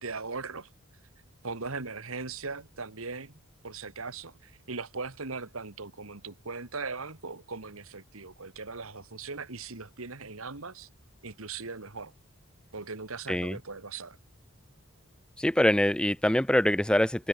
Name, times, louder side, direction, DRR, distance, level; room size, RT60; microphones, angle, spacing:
voice 1, 0.0-0.7 1.4-10.9 11.2-12.1 12.7-14.2, right 4 dB, 70° right, 1.9 m, -39 dB
voice 2, 15.4-17.3, left 1 dB, 5° left, 0.4 m, -24 dB
head